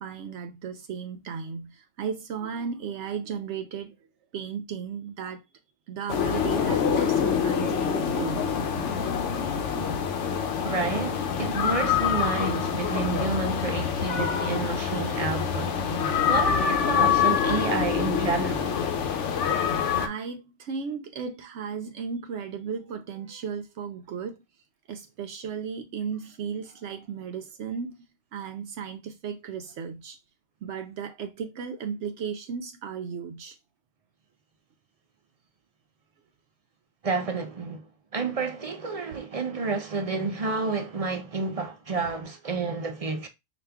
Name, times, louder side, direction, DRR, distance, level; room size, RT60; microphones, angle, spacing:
voice 1, 0.0-4.0 4.3-5.4 5.9-8.4 9.8-10.0 20.0-24.4 24.9-27.9 28.3-30.2 30.6-33.6, right 6 dB, 75° right, 0.9 m, -35 dB
sound 1, 6.1-20.1, left 7 dB, 80° left, 0.9 m, -26 dB
voice 2, 10.6-15.8 16.3-18.7 37.0-37.8 38.1-43.3, right 4 dB, 40° right, 0.5 m, -30 dB
5.0 x 2.4 x 3.4 m
omnidirectional pair, 1.2 m